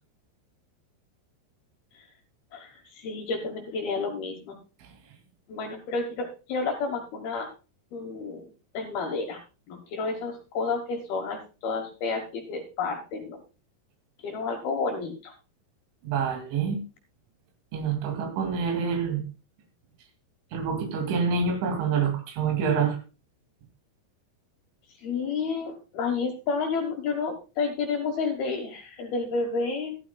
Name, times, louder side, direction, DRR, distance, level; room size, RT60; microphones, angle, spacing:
voice 1, 2.5-4.6 5.5-7.5 7.9-9.4 9.7-13.4 14.2-15.3 25.0-30.0, left 4 dB, 65° left, 3 dB, 2.5 m, -31 dB
voice 2, 16.0-16.8 17.7-19.2 20.5-23.0, right 6 dB, 70° right, 5 dB, 4.8 m, -26 dB
14.5 x 13.0 x 2.3 m, 0.32 s
omnidirectional pair, 5.9 m